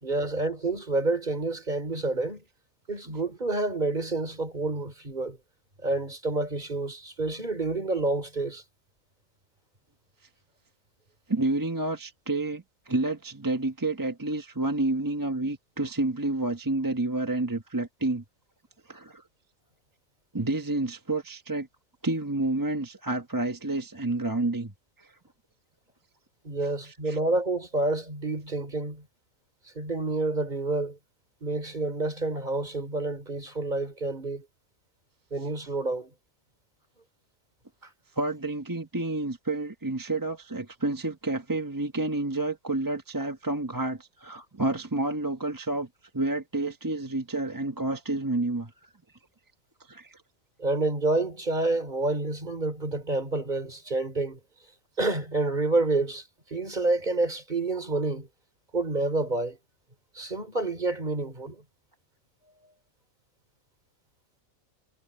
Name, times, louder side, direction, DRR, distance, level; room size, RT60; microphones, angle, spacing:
voice 1, 0.0-2.4 2.9-5.4 5.8-8.6 26.4-29.1 29.8-31.0 31.4-34.5 35.3-36.1 50.6-54.4 55.0-56.2 56.5-58.3 58.7-59.6 60.2-61.6, right 2 dB, 35° right, 3.6 m, -28 dB
voice 2, 11.3-18.2 18.8-19.2 20.3-21.7 22.0-24.7 25.0-25.1 26.8-27.2 38.2-45.9 46.1-48.9 49.8-50.2, right 2 dB, 15° right, 1.1 m, -29 dB
omnidirectional pair, 1.3 m